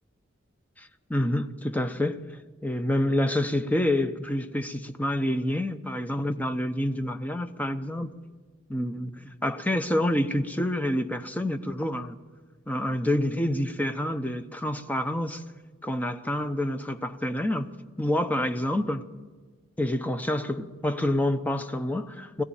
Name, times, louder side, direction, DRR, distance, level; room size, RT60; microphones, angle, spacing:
voice 1, 0.8-2.2 2.6-8.1 8.7-12.2 12.7-15.4 15.8-17.7 18.0-19.0 19.8-22.4, left 1 dB, 10° left, 0.8 m, -27 dB
21.0 x 15.0 x 9.0 m
head